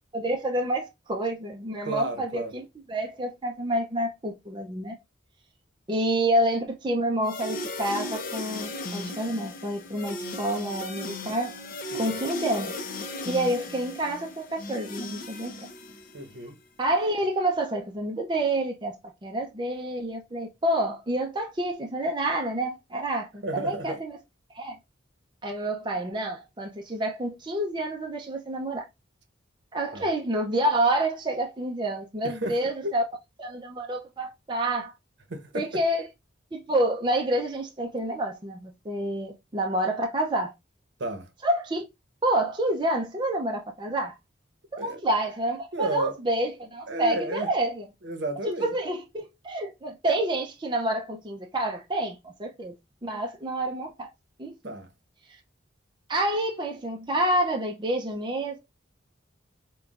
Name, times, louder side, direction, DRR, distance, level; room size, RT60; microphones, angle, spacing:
voice 1, 0.1-5.0 5.9-11.5 11.9-12.7 13.3-15.5 16.8-18.9 19.2-24.2 24.5-24.8 25.4-28.9 29.7-33.0 33.4-34.9 35.5-36.0 36.5-40.5 41.4-41.9 42.2-44.1 44.7-47.8 48.5-52.7 53.0-54.1 54.4-54.7 56.1-58.6, right 1 dB, 25° right, 0.5 m, -28 dB
voice 2, 1.8-2.5 11.9-12.1 16.1-16.6 23.4-24.0 29.9-30.1 32.2-32.9 35.3-35.8 41.0-41.3 44.8-45.1 45.7-46.1 46.9-47.5 48.0-48.7 54.6-54.9, right 2 dB, 65° right, 0.8 m, -32 dB
sound 1, 7.2-16.4, left 2 dB, 45° left, 0.6 m, -36 dB
5.4 x 2.3 x 2.4 m
head